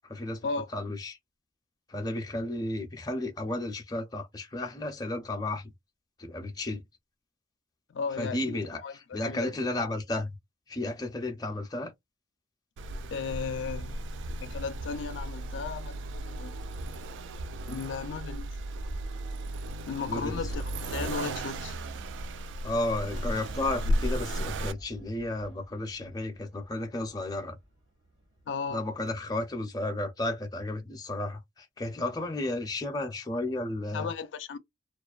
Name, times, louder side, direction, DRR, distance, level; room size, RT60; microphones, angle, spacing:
voice 1, 0.0-0.5 0.7-1.2 1.9-5.7 6.2-6.8 8.2-8.8 9.1-10.4 10.7-11.9 20.0-20.5 22.6-27.6 28.7-34.1, left 2 dB, 20° left, 0.5 m, -33 dB
voice 2, 7.9-9.5 13.1-13.9 14.4-16.6 17.7-18.5 19.9-21.7 28.5-28.8 33.9-34.6, left 5 dB, 80° left, 0.4 m, -35 dB
Accelerating revving vroom, 12.8-24.7, right 1 dB, 80° right, 0.3 m, -35 dB
Cheering / Fireworks, 23.1-29.1, equal, 65° right, 1.4 m, -48 dB
2.4 x 2.2 x 2.3 m
head